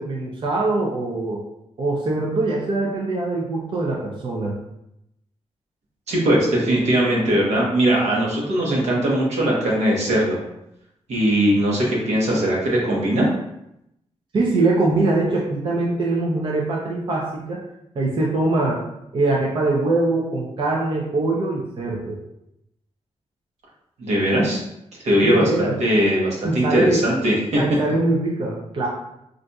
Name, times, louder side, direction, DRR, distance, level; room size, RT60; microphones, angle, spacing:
voice 1, 0.0-1.4 1.8-4.5 14.3-17.6 18.0-18.8 19.1-22.2 25.2-25.7 26.4-27.0 27.6-28.9, right 2 dB, 45° right, -3 dB, 0.5 m, -22 dB
voice 2, 6.1-10.4 11.1-13.3 24.0-24.6 25.0-27.6, right 1 dB, 80° right, -3 dB, 1.0 m, -20 dB
3.9 x 2.5 x 2.3 m, 0.81 s
wide cardioid pair, 160°, 11 cm